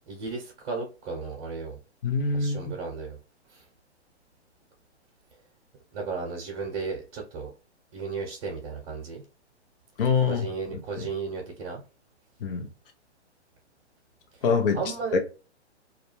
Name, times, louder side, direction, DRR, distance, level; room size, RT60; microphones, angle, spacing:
voice 1, 0.1-1.8 2.3-3.2 3.5-3.6 5.9-7.5 7.9-9.2 10.3-11.8 14.7-15.2, right 4 dB, 35° right, 0.8 m, -34 dB
voice 2, 2.0-2.7 10.0-10.5 12.4-12.7 14.4-14.8 15.1-15.2, left 5 dB, 50° left, 0.7 m, -24 dB
2.4 x 2.2 x 3.0 m
figure-of-eight pair, 125°, 35 cm